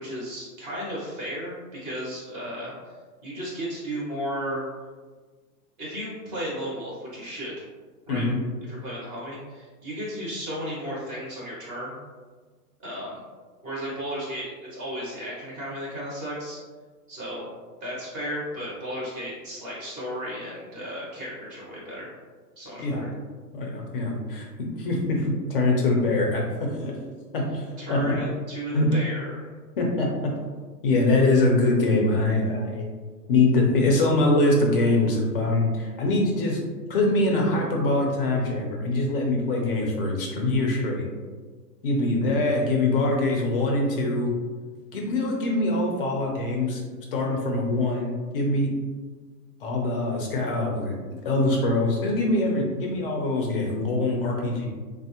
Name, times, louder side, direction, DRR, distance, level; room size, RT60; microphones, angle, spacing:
voice 1, 0.0-2.7 3.2-4.6 5.8-7.6 8.1-8.3 8.7-12.0 12.8-13.2 13.6-16.6 17.1-17.5 17.8-22.2 22.6-23.1 27.8-29.5, equal, 15° right, -6 dB, 0.5 m, -34 dB
voice 2, 8.1-8.4 22.8-23.0 23.5-24.5 24.8-27.0 27.3-28.0 28.7-28.9 29.8-30.3 30.8-32.8 33.3-36.6 36.9-41.1 41.8-44.3 44.9-46.8 47.1-48.7 49.6-54.7, left 2 dB, 35° left, 0 dB, 0.5 m, -23 dB
3.2 x 2.1 x 2.8 m, 1.4 s
hypercardioid pair, 140°, 50 cm